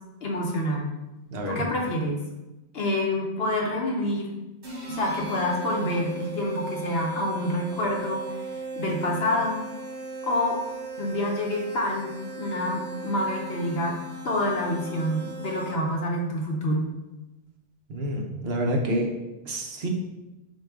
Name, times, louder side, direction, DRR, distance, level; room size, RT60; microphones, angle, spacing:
voice 1, 0.2-0.9 1.5-2.2 2.7-4.4 4.9-8.5 8.7-9.7 10.2-10.6 11.0-14.0 14.2-16.9, left 1 dB, 65° left, 0 dB, 1.0 m, -27 dB
voice 2, 1.3-1.6 17.9-19.1 19.4-19.9, equal, 65° right, 1 dB, 0.9 m, -28 dB
sound 1, 4.6-16.0, right 3 dB, 80° right, 1.5 m, -37 dB
6.6 x 2.3 x 3.5 m, 1.0 s
omnidirectional pair, 1.1 m